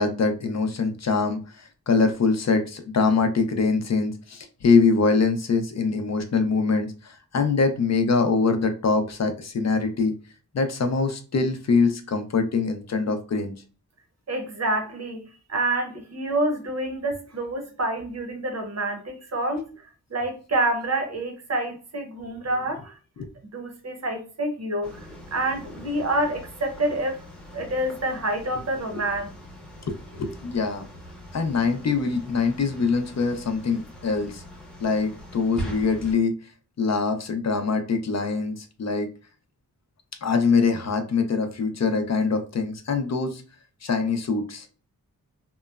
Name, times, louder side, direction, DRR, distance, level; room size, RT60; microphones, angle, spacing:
voice 1, 0.0-10.1 10.5-13.5 23.2-23.3 28.9-29.0 29.9-30.9 31.3-34.4 34.8-36.4 36.8-39.1 40.2-43.4 43.8-44.7, left 4 dB, 50° left, 0.5 m, -23 dB
voice 2, 14.3-15.2 15.5-19.6 20.1-22.9 23.5-24.9 25.3-27.2 27.5-29.3, right 1 dB, 50° right, 0.7 m, -27 dB
sound 1, 24.8-36.1, equal, 5° left, 0.7 m, -42 dB
2.9 x 2.0 x 2.3 m
wide cardioid pair, 115°, 34 cm